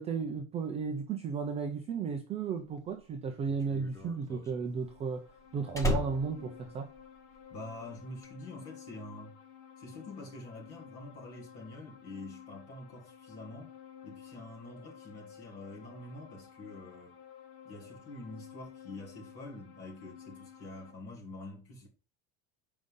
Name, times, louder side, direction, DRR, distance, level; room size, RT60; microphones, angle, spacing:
voice 1, 0.0-5.3 5.5-6.9, right 5 dB, 15° right, 0.4 m, -34 dB
Slam, 2.8-7.6 7.8-8.3, equal, 10° left, 0.8 m, -36 dB
sound 1, 4.6-20.9, left 8 dB, 60° left, 2.1 m, -53 dB
voice 2, 7.5-9.3 9.8-13.7 14.0-17.2 17.6-21.9, left 2 dB, 35° left, 3.4 m, -46 dB
7.8 x 5.3 x 3.6 m
cardioid pair, 165°, 41 cm